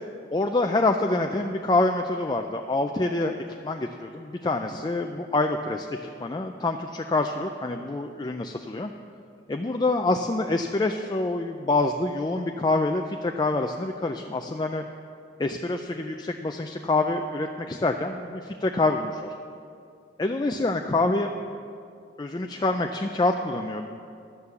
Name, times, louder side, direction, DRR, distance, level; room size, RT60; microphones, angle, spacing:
voice 1, 0.3-3.3 3.6-8.9 9.5-14.8 15.4-19.3 20.2-21.3 22.2-24.0, left 2 dB, 25° left, 4 dB, 0.4 m, -26 dB
12.0 x 6.7 x 7.0 m, 2.4 s
head